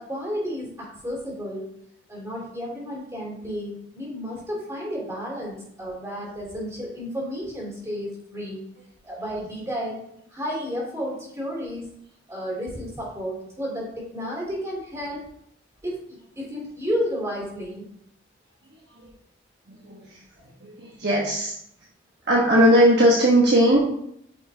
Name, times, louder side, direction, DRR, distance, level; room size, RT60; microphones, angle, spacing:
voice 1, 0.0-1.7 2.1-8.6 9.0-10.0 10.3-11.9 12.3-15.2 15.8-17.9, equal, 15° right, -4 dB, 3.2 m, -32 dB
voice 2, 19.7-20.2 20.6-21.6 22.3-23.8, equal, 55° right, -5 dB, 1.4 m, -19 dB
9.6 x 5.5 x 2.9 m, 0.72 s
head